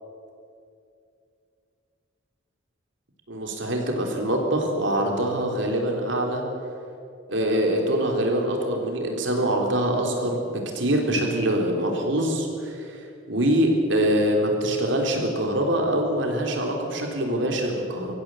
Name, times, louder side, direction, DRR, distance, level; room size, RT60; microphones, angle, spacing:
voice 1, 3.3-6.4 7.3-13.0 13.3-18.1, right 1 dB, 60° right, 1 dB, 3.8 m, -24 dB
24.0 x 15.0 x 8.1 m, 2.5 s
head